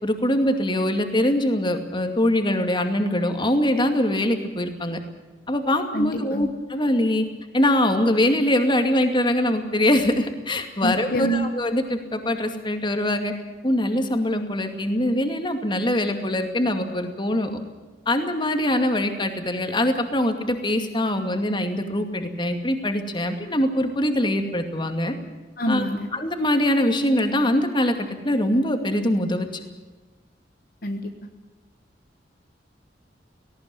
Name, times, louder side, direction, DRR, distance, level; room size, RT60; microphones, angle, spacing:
voice 1, 0.0-5.0 5.5-7.2 7.5-13.3 13.6-17.6 18.1-25.1 25.7-25.8 26.1-29.5, left 1 dB, 25° left, 6 dB, 2.4 m, -23 dB
voice 2, 5.9-6.5 10.8-11.5 25.6-26.1 30.8-31.1, right 1 dB, 55° left, 5 dB, 1.4 m, -26 dB
18.5 x 18.0 x 9.8 m, 1.2 s
head